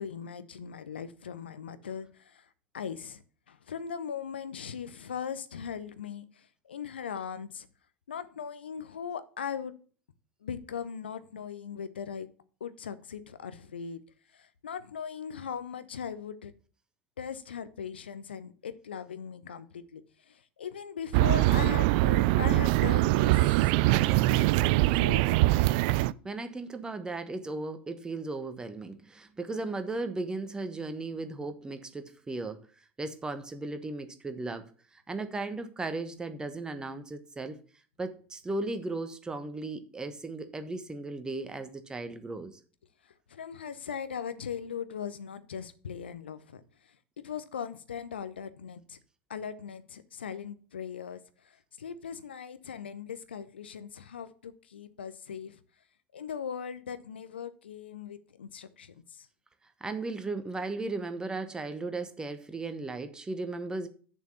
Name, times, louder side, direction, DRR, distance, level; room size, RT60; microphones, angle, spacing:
voice 1, 0.0-7.7 8.1-9.7 10.4-12.3 12.6-14.0 14.3-16.5 17.2-23.4 23.7-25.4 26.2-26.3 43.0-47.0 47.2-49.0 49.3-55.6 56.1-59.3, left 7 dB, 70° left, 0.8 m, -39 dB
sound 1, 21.1-26.1, right 18 dB, 50° right, 0.3 m, -23 dB
voice 2, 26.2-32.7 33.0-37.6 38.0-42.6 59.8-63.9, right 3 dB, 15° right, 1.2 m, -36 dB
6.9 x 6.1 x 7.0 m
figure-of-eight pair, 80°, 6 cm